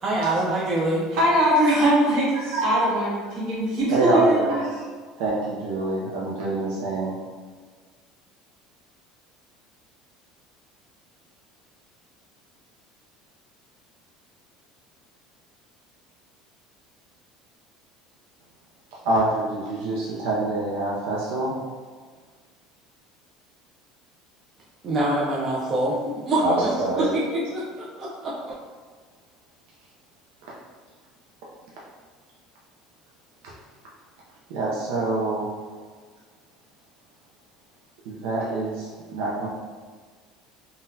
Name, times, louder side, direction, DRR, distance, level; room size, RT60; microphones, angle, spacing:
voice 1, 0.0-1.1 24.8-27.6 28.0-28.6, right 1 dB, 25° right, -5 dB, 0.4 m, -25 dB
voice 2, 1.1-2.3 2.6-4.6, right 1 dB, 60° right, -7 dB, 1.3 m, -21 dB
voice 3, 3.9-4.9 5.2-7.1 19.0-21.7 26.4-27.1 33.4-33.5 34.5-35.6 38.1-39.5, right 2 dB, 75° right, -5 dB, 0.5 m, -26 dB
3.8 x 2.2 x 2.7 m, 1.5 s
cardioid pair, 165°, 0 cm